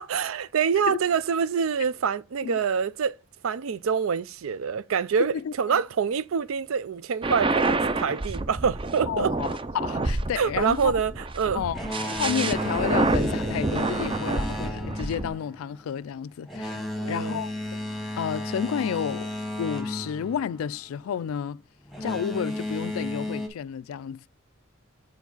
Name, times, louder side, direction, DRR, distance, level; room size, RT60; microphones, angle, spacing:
voice 1, 0.0-3.1 3.4-9.3 10.4-11.6 17.0-17.4, right 6 dB, 80° right, 0.4 m, -26 dB
voice 2, 5.3-5.8 9.1-10.9 11.5-11.8 12.1-17.8 18.2-19.3 19.6-21.6 22.0-24.3, left 8 dB, 90° left, 0.3 m, -31 dB
sound 1, 7.2-15.3, right 2 dB, 25° right, 0.5 m, -28 dB
Boat Water vehicle, 11.7-21.1 21.9-23.5, left 1 dB, ahead, 1.1 m, -33 dB
7.2 x 4.5 x 3.9 m
head